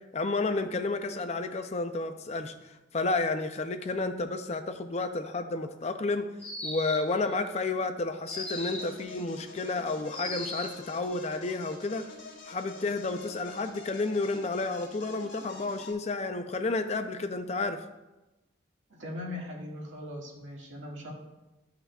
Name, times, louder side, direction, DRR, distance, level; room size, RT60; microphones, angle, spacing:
voice 1, 0.1-6.3 6.6-12.0 12.5-17.8, left 3 dB, 35° left, 7 dB, 0.5 m, -31 dB
sound 1, 6.4-7.2 8.3-9.0 10.1-10.8, left 1 dB, 5° left, 1.4 m, -37 dB
sound 2, 8.3-15.9, left 3 dB, 75° left, 1.9 m, -47 dB
voice 2, 18.9-21.1, left 1 dB, 80° right, -2 dB, 2.0 m, -40 dB
12.5 x 5.7 x 2.4 m, 1.0 s
head